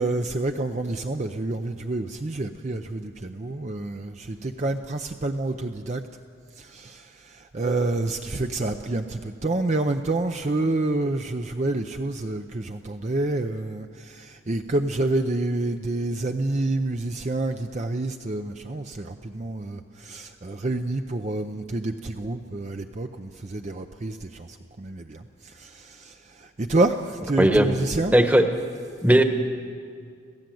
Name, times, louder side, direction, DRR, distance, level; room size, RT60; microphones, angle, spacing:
voice 1, 0.0-6.0 6.5-28.1, right 2 dB, 35° right, 6 dB, 0.6 m, -28 dB
voice 2, 28.1-28.4 29.0-29.2, right 1 dB, 10° right, 6 dB, 1.2 m, -16 dB
27.0 x 16.0 x 7.8 m, 2.2 s
head